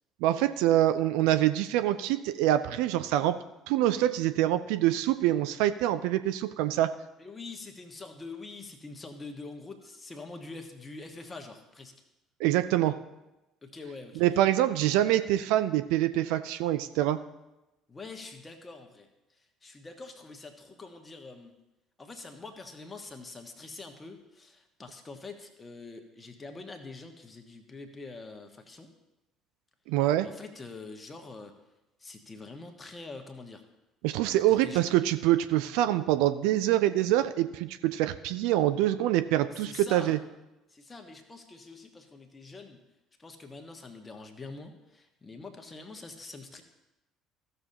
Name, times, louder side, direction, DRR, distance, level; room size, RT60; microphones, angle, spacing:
voice 1, 0.2-6.9 12.4-13.0 14.2-17.2 29.9-30.3 34.0-40.2, right 13 dB, 60° right, 11 dB, 0.4 m, -25 dB
voice 2, 7.2-11.9 13.6-14.5 17.9-21.5 22.0-28.9 30.2-31.6 32.0-33.6 34.3-34.8 39.5-40.1 40.7-42.8 43.2-46.6, left 3 dB, 20° left, 4 dB, 1.5 m, -45 dB
15.5 x 6.8 x 2.9 m, 0.97 s
figure-of-eight pair, 55°, 0 cm